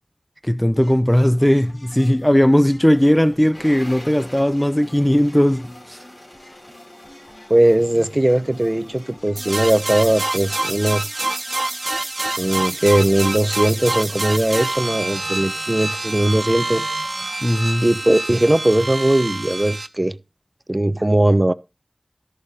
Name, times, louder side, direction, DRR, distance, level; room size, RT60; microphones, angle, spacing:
voice 1, 0.5-6.0 17.4-17.9, equal, 10° left, 0.6 m, -17 dB
sound 1, 0.7-17.5, left 1 dB, 85° left, 4.7 m, -47 dB
sound 2, 3.5-10.0, left 1 dB, 45° left, 3.4 m, -44 dB
voice 2, 7.5-11.1 12.4-16.8 17.8-20.2 20.7-21.5, right 1 dB, 30° right, 0.8 m, -19 dB
sound 3, 9.4-19.9, right 2 dB, 65° right, 1.0 m, -26 dB
13.0 x 7.0 x 3.8 m
wide cardioid pair, 50°, 0 cm